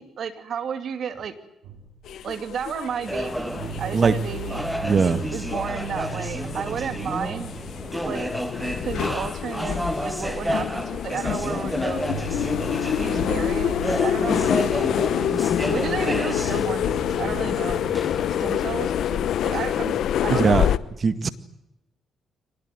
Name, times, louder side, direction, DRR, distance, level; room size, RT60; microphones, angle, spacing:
voice 1, 0.0-1.3 2.2-4.7 5.0-7.5 8.0-8.3 8.8-12.1 13.0-15.3 15.7-17.8 18.4-20.8, right 7 dB, 65° right, 10 dB, 2.7 m, -32 dB
sound 1, 1.6-3.0 3.2-8.2 8.5-9.0 9.2-9.8 10.0-10.8 11.0-20.6, right 3 dB, 85° right, 5.6 m, -38 dB
sound 2, 2.1-20.8, left 10 dB, 70° left, 0.9 m, -27 dB
sound 3, 3.1-18.8, equal, 5° right, 1.4 m, -32 dB
voice 2, 4.8-5.2 20.3-20.7 21.0-21.3, right 5 dB, 45° right, 12 dB, 2.0 m, -20 dB
24.5 x 19.5 x 9.5 m, 0.86 s
supercardioid pair, 55°, 0 cm